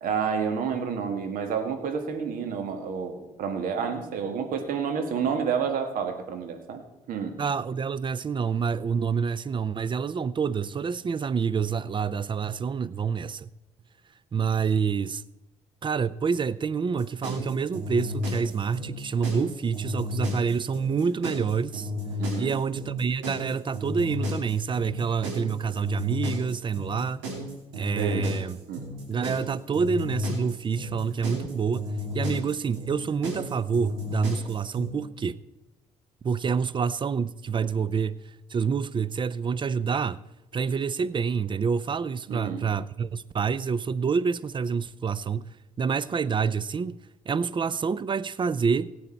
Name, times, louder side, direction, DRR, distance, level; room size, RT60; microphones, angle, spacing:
voice 1, 0.0-6.8 7.1-7.4 22.2-22.6 28.0-28.4 28.7-28.9 42.3-42.7, right 6 dB, 65° right, 1.7 m, -29 dB
voice 2, 7.4-13.5 14.3-15.2 15.8-21.9 22.4-27.2 27.7-28.6 29.1-35.4 36.2-38.2 38.5-40.2 40.5-45.5 45.8-47.0 47.3-48.9, right 6 dB, 30° right, 0.5 m, -27 dB
sound 1, 16.9-34.9, left 2 dB, 85° right, 3.1 m, -33 dB
17.0 x 8.6 x 4.5 m
hypercardioid pair, 55°, 16 cm